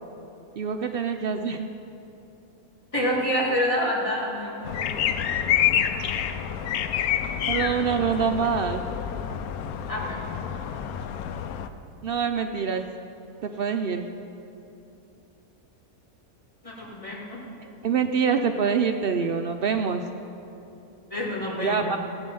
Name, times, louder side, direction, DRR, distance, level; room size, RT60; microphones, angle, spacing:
voice 1, 0.6-1.7 7.5-8.8 12.0-12.8 13.4-14.1 17.6-20.0 21.6-22.0, right 6 dB, 85° right, 5 dB, 0.5 m, -25 dB
voice 2, 2.9-5.5 9.9-10.4 16.6-17.4 21.1-22.0, equal, 20° left, -4 dB, 2.3 m, -28 dB
sound 1, 4.7-11.7, left 9 dB, 75° left, 1.1 m, -28 dB
16.5 x 8.2 x 5.5 m, 2.9 s
omnidirectional pair, 1.6 m